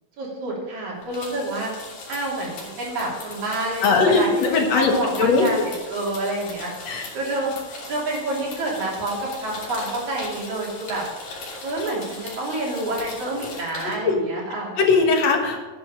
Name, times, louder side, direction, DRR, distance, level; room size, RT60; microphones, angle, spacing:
voice 1, 0.2-1.7 2.1-5.6 5.9-6.7 7.1-7.5 7.9-11.1 11.6-14.7, right 2 dB, 70° right, -3 dB, 4.7 m, -28 dB
sound 1, 1.0-13.9, left 3 dB, 80° left, 4.5 m, -39 dB
voice 2, 3.8-5.5 6.9-7.1 14.0-14.2 14.8-15.6, left 4 dB, 60° left, 3 dB, 2.5 m, -19 dB
11.5 x 9.7 x 5.1 m, 1.3 s
omnidirectional pair, 3.5 m